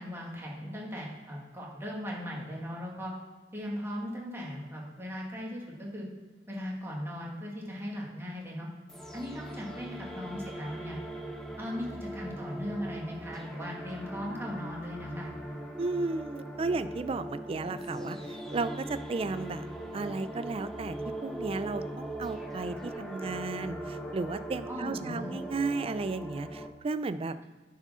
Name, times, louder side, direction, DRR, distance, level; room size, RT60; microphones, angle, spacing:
voice 1, 0.0-3.1 3.5-6.0 6.5-8.7 9.1-11.0 11.6-15.3 24.7-25.3, equal, 15° right, -3 dB, 2.0 m, -38 dB
sound 1, 8.9-26.7, right 1 dB, 5° left, 0.8 m, -40 dB
voice 2, 15.8-19.7 19.9-21.0 21.2-27.4, right 3 dB, 35° right, 13 dB, 0.4 m, -34 dB
9.1 x 4.9 x 5.5 m, 1.3 s
head